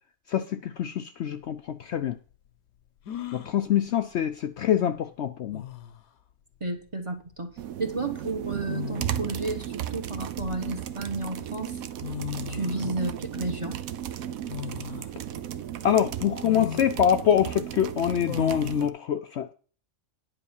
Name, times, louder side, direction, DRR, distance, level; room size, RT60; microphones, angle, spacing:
voice 1, 0.3-2.2 3.3-5.6 15.8-19.5, left 9 dB, 65° left, 0.8 m, -25 dB
sound 1, 1.5-1.6 3.1-3.5 5.1-5.2 5.5-6.0 7.3-7.5 8.6-9.4 10.0-11.1 11.7-11.8 12.0-12.9 14.5-15.1 15.6-15.7 16.4-16.9 18.2-18.9, left 8 dB, 85° left, 1.3 m, -36 dB
voice 2, 6.6-7.5 7.8-11.8 12.5-13.8, right 3 dB, 25° right, 1.2 m, -32 dB
sound 2, 7.6-18.9, right 11 dB, 85° right, 1.2 m, -35 dB
9.9 x 5.1 x 7.1 m
omnidirectional pair, 1.5 m